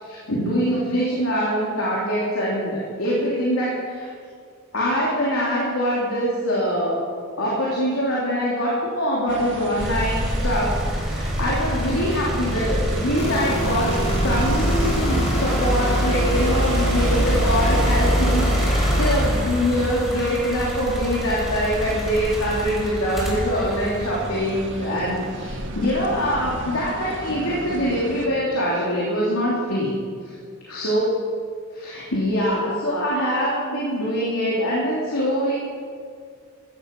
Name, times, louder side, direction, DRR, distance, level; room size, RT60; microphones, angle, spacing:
voice 1, 0.0-4.1 4.7-7.1 7.4-10.7 11.0-14.0 14.2-29.9 30.2-30.3 30.7-31.1 31.7-35.5, equal, 90° left, -6 dB, 3.2 m, -24 dB
sound 1, 9.3-28.3, right 2 dB, 60° right, 1.4 m, -34 dB
sound 2, 9.8-24.8 25.4-26.6, equal, ahead, 3.3 m, -25 dB
sound 3, 13.2-19.7, equal, 30° left, 2.0 m, -28 dB
15.0 x 14.0 x 5.4 m, 2.1 s
head